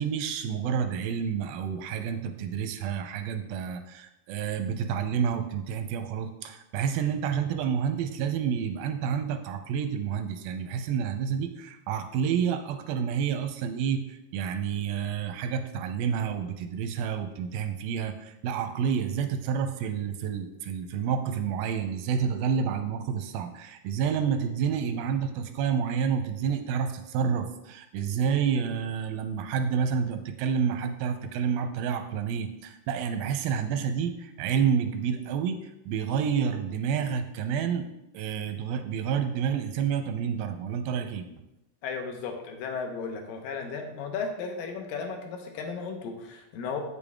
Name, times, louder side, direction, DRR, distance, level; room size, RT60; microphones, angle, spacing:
voice 1, 0.0-14.0 14.3-35.6 35.9-37.9 38.1-41.3, right 7 dB, 90° right, 7 dB, 2.4 m, -29 dB
voice 2, 41.8-46.8, left 5 dB, 75° left, 3 dB, 2.6 m, -35 dB
8.6 x 7.0 x 3.5 m, 0.87 s
omnidirectional pair, 4.2 m